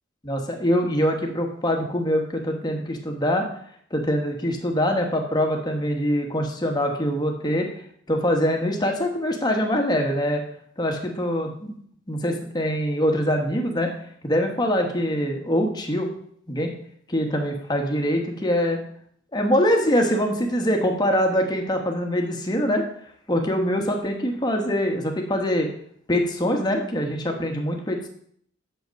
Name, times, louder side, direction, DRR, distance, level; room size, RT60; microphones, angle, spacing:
voice 1, 0.2-3.5 3.9-7.6 8.1-10.4 10.8-11.7 12.1-13.9 14.2-16.1 16.5-16.7 17.1-18.8 19.3-22.8 23.3-25.7 26.1-28.1, equal, 20° left, 2 dB, 1.2 m, -23 dB
7.9 x 6.8 x 5.2 m, 0.64 s
head